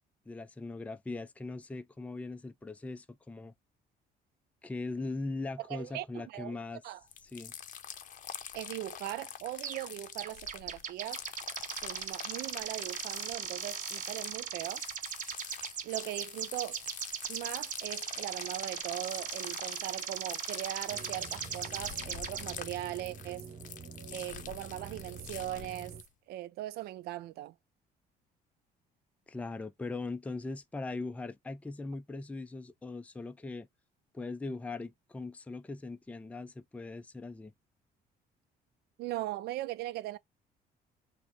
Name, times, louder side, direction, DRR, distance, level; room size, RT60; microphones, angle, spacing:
voice 1, 0.3-3.5 4.6-6.8 7.3-7.5 29.3-33.7 34.1-37.5, left 3 dB, 10° left, 0.4 m, -40 dB
voice 2, 5.6-6.6 6.8-7.0 8.5-11.2 11.7-14.8 15.8-16.8 17.3-23.5 24.1-26.0 26.3-27.5 39.0-40.2, right 15 dB, 70° right, 0.4 m, -39 dB
sound 1, 7.1-26.1, left 9 dB, 50° left, 0.6 m, -46 dB
sound 2, 9.6-9.9 10.2-22.5, right 8 dB, 50° right, 0.7 m, -39 dB
sound 3, 20.9-26.0, right 6 dB, 30° right, 1.1 m, -47 dB
6.1 x 2.1 x 3.6 m
cardioid pair, 110°, 17 cm